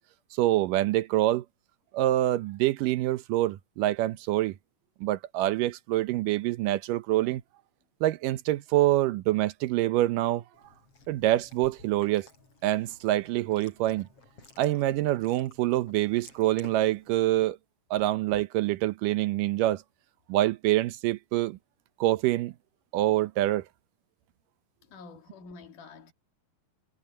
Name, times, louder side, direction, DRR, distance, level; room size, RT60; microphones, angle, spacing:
voice 1, 0.3-1.4 1.9-4.6 5.0-7.4 8.0-10.4 11.1-12.3 12.6-14.1 14.6-17.6 17.9-19.8 20.3-21.6 22.0-22.5 22.9-23.6, right 15 dB, 80° right, 2.4 m, -26 dB
Chewing mastication, 10.5-17.4, left 3 dB, 45° left, 7.2 m, -55 dB
voice 2, 24.9-26.1, left 4 dB, 70° left, 3.7 m, -47 dB
omnidirectional pair, 3.8 m